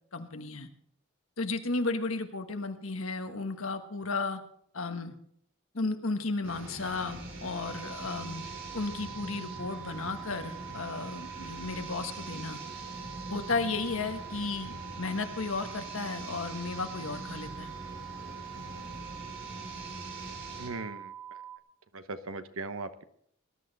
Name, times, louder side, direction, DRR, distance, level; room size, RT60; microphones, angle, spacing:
voice 1, 0.1-0.7 1.4-4.4 4.7-5.1 5.7-8.4 8.7-12.6 13.3-17.7, left 3 dB, 85° left, 7 dB, 1.4 m, -34 dB
sound 1, 6.4-20.7, right 1 dB, 70° right, 3.5 m, -43 dB
sound 2, 7.6-21.6, right 9 dB, 5° right, 1.8 m, -45 dB
voice 2, 20.6-21.1 21.9-23.0, right 3 dB, 90° right, 10 dB, 1.0 m, -38 dB
20.0 x 11.0 x 4.1 m, 0.67 s
head